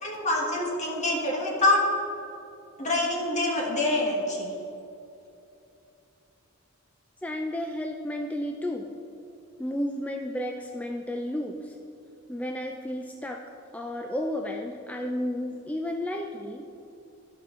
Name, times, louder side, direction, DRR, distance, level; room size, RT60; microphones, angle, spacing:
voice 1, 0.0-1.8 2.8-4.5, left 2 dB, 35° left, -2 dB, 1.6 m, -26 dB
voice 2, 7.2-8.9 9.6-11.7 12.3-13.4 13.7-16.7, left 1 dB, 5° left, 2 dB, 0.3 m, -32 dB
12.5 x 5.8 x 3.7 m, 2.7 s
head